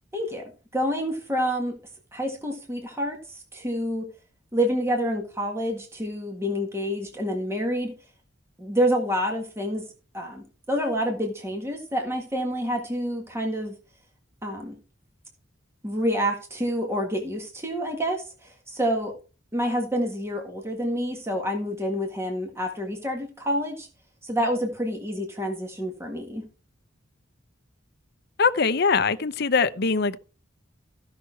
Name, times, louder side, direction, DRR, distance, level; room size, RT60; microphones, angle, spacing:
voice 1, 0.1-1.7 2.1-3.2 3.5-4.0 4.5-7.9 8.6-9.8 10.1-13.7 14.4-14.8 15.8-18.2 18.7-19.1 19.5-23.9 24.2-26.4, equal, 15° right, 1.7 m, -28 dB
voice 2, 28.4-30.2, left 5 dB, 55° left, 0.8 m, -22 dB
14.5 x 6.0 x 4.5 m
head